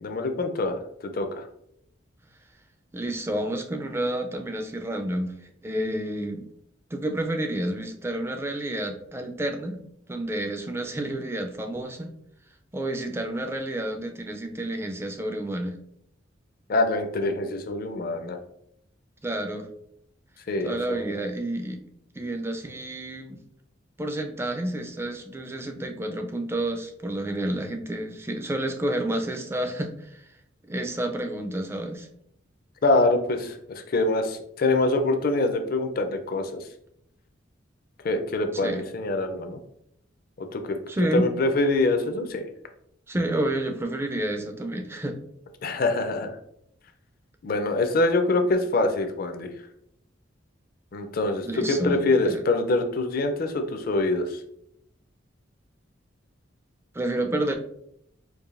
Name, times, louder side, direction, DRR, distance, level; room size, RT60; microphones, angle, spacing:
voice 1, 0.0-1.5 16.7-18.4 20.5-21.2 32.8-36.6 38.0-39.6 40.4-40.8 41.1-42.5 45.6-46.4 47.4-49.5 50.9-54.4, left 2 dB, 50° left, 7 dB, 0.5 m, -25 dB
voice 2, 2.9-5.3 5.6-6.5 6.9-9.8 10.1-12.1 12.7-15.8 19.2-19.7 20.6-21.8 22.2-23.4 24.0-30.2 30.7-32.1 38.6-38.8 40.9-41.3 43.1-45.2 51.4-52.0 52.2-52.4 56.9-57.5, right 1 dB, 15° right, 4 dB, 0.4 m, -29 dB
4.7 x 2.6 x 2.5 m, 0.73 s
head